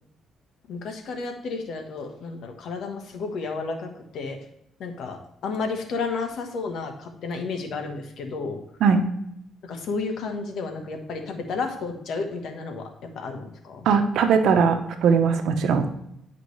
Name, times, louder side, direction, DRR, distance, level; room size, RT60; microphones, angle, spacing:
voice 1, 0.7-4.4 4.8-8.6 9.6-13.8, left 4 dB, 70° left, 4 dB, 1.2 m, -32 dB
voice 2, 13.8-15.9, right 6 dB, 80° right, 7 dB, 0.9 m, -20 dB
9.6 x 5.0 x 3.2 m, 0.78 s
cardioid pair, 90°, 0 cm